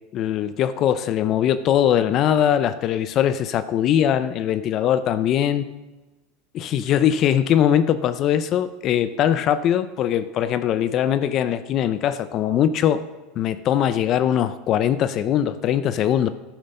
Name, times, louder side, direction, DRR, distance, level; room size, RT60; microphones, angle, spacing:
voice 1, 0.1-5.7 6.5-13.0 13.4-16.3, left 10 dB, 40° left, 14 dB, 0.5 m, -21 dB
11.5 x 9.0 x 5.4 m, 1.2 s
supercardioid pair, 140°, 0 cm